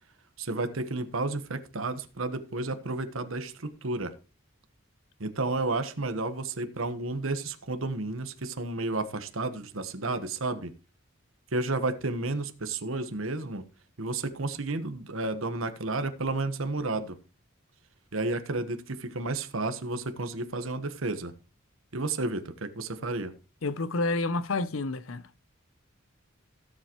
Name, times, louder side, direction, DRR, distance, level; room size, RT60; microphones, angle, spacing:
voice 1, 0.4-4.1 5.2-10.7 11.5-13.6 14.0-17.2 18.1-21.3 21.9-23.3, right 2 dB, 80° right, 1.3 m, -32 dB
voice 2, 23.6-25.4, left 3 dB, 80° left, 0.8 m, -29 dB
16.5 x 7.6 x 3.1 m
head